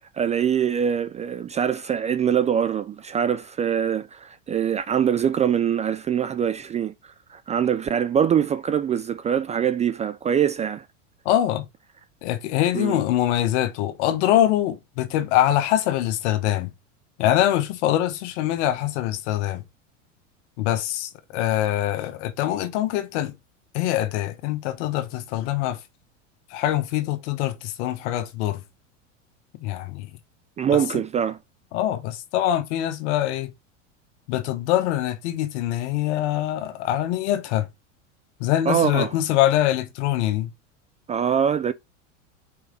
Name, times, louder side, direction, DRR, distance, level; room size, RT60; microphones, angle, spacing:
voice 1, 0.2-10.9 12.7-13.0 30.6-31.4 38.7-39.1 41.1-41.7, right 8 dB, 20° right, 0.4 m, -23 dB
voice 2, 11.2-11.6 12.2-16.7 17.2-19.6 20.6-23.3 23.7-25.8 26.5-28.6 29.6-30.1 30.9-31.0 31.7-33.5 34.3-37.7 38.4-40.5, left 12 dB, 65° left, 1.2 m, -24 dB
4.8 x 4.6 x 5.2 m
hypercardioid pair, 90°, 37 cm